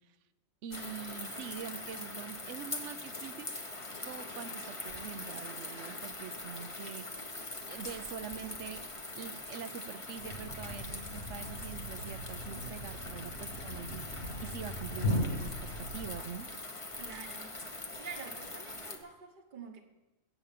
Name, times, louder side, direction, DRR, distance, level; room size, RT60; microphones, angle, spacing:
voice 1, 0.6-3.5 4.0-7.2 7.7-8.8 9.1-16.5, right 8 dB, 65° right, 13 dB, 1.0 m, -44 dB
sound 1, 0.7-19.0, left 2 dB, 25° left, 1.2 m, -43 dB
Thump thud, 10.1-16.4, left 1 dB, 80° left, 2.0 m, -38 dB
voice 2, 17.0-17.5 18.0-19.8, right 6 dB, 40° right, 4 dB, 1.2 m, -47 dB
17.0 x 7.1 x 6.7 m, 1.0 s
omnidirectional pair, 1.4 m